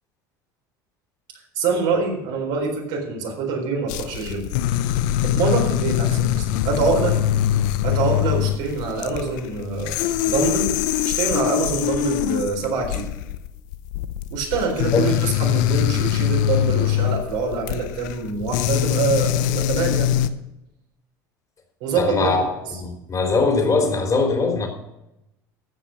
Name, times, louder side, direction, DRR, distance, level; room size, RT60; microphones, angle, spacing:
voice 1, 1.6-4.5 5.2-7.2 7.8-10.8 11.0-13.1 14.3-20.1 21.8-22.5, right 4 dB, 75° right, 0 dB, 4.0 m, -25 dB
sound 1, 3.9-20.3, left 12 dB, 75° left, 0.7 m, -23 dB
voice 2, 22.0-22.4 22.8-24.7, left 4 dB, 35° left, 3 dB, 3.5 m, -21 dB
15.0 x 6.1 x 6.4 m, 0.88 s
hypercardioid pair, 80°, 10 cm